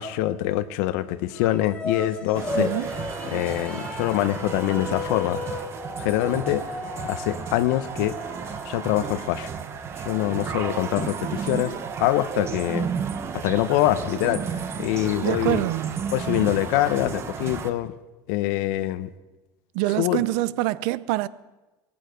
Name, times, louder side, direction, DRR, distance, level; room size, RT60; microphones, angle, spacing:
voice 1, 0.0-2.7 3.3-5.4 6.0-6.6 7.0-8.2 8.6-9.5 10.0-11.7 12.0-12.9 13.3-15.7 16.1-17.9 18.3-19.1 20.0-20.2, left 14 dB, 80° left, 0.8 m, -24 dB
sound 1, 1.3-9.8, left 3 dB, 10° left, 1.1 m, -35 dB
sound 2, 2.3-17.7, right 6 dB, 30° right, 1.0 m, -33 dB
voice 2, 2.5-2.9 15.2-16.0 19.7-21.3, right 17 dB, 70° right, 0.6 m, -25 dB
18.5 x 14.5 x 5.1 m
cardioid pair, 150°, 9 cm